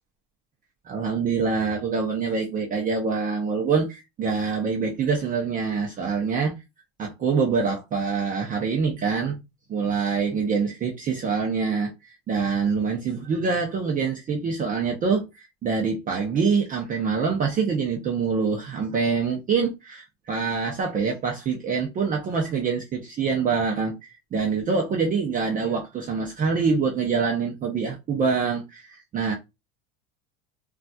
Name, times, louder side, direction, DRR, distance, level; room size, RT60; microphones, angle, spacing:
voice 1, 0.9-6.6 7.0-9.4 9.7-11.9 12.3-29.3, right 5 dB, 25° right, 0.5 m, -25 dB
3.9 x 2.4 x 2.2 m
cardioid pair, 145°, 33 cm